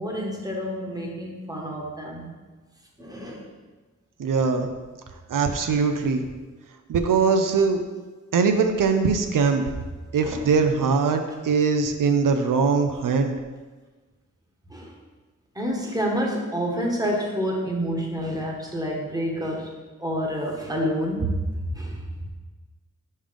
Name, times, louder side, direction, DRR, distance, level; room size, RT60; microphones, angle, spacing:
voice 1, 0.0-2.3 3.0-3.5 10.2-10.5 14.7-14.9 15.5-22.3, equal, 10° right, -1 dB, 1.2 m, -28 dB
voice 2, 4.2-4.7 5.3-6.2 6.9-7.8 8.3-9.7 10.1-13.3, right 5 dB, 90° right, 6 dB, 0.6 m, -21 dB
5.4 x 5.1 x 5.2 m, 1.3 s
wide cardioid pair, 110°, 31 cm